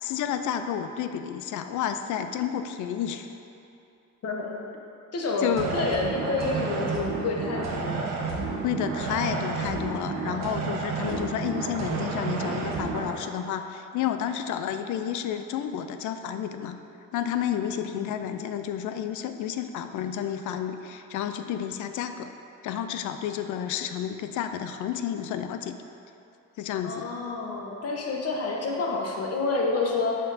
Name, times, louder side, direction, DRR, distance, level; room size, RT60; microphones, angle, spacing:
voice 1, 0.0-3.3 5.4-5.7 8.6-16.8 17.1-22.3 22.6-25.8 26.6-27.1, left 9 dB, 75° left, 8 dB, 0.5 m, -31 dB
voice 2, 4.2-4.6 5.1-8.2 17.7-18.1 26.8-30.2, left 3 dB, 55° left, 0 dB, 1.1 m, -29 dB
sound 1, 5.5-13.1, right 4 dB, 65° right, 1.1 m, -31 dB
8.0 x 4.4 x 4.0 m, 2.7 s
cardioid pair, 90°, 30 cm